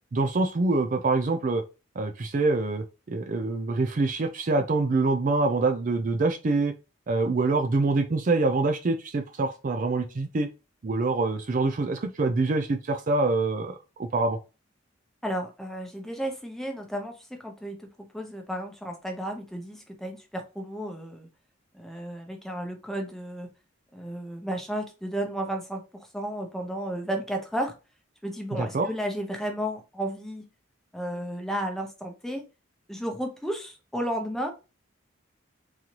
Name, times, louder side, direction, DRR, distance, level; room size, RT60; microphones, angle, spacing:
voice 1, 0.1-1.6 2.0-6.7 7.1-10.5 10.8-14.4 28.5-28.9, right 3 dB, 40° right, 7 dB, 0.4 m, -25 dB
voice 2, 15.2-17.9 18.1-21.3 21.7-23.5 23.9-27.7 28.2-30.5 30.9-32.4 32.9-34.5, right 1 dB, ahead, 3 dB, 0.7 m, -33 dB
3.8 x 3.1 x 2.8 m, 0.29 s
head